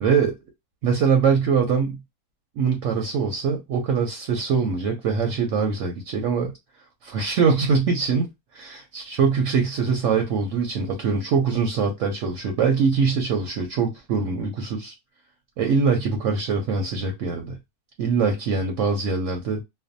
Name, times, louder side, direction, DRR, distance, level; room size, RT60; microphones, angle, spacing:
voice 1, 0.0-0.4 0.8-2.0 2.6-6.5 7.0-8.7 8.9-14.9 15.6-17.6 18.0-19.6, right 5 dB, 70° right, 0.8 m, -23 dB
2.5 x 2.1 x 2.5 m
omnidirectional pair, 1.6 m